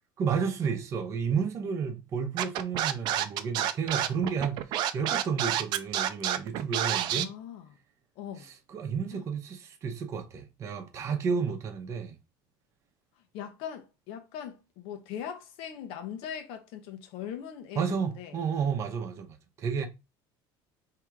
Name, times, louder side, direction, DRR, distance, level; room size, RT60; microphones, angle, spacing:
voice 1, 0.2-7.3 8.7-12.1 17.8-19.9, right 6 dB, 30° right, 0.8 m, -31 dB
Scratching (performance technique), 2.4-7.2, right 11 dB, 50° right, 0.5 m, -28 dB
voice 2, 7.1-7.7 8.2-8.5 9.1-9.2 13.3-18.4, left 9 dB, 65° left, 0.9 m, -40 dB
3.6 x 2.9 x 4.7 m
cardioid pair, 180°, 10 cm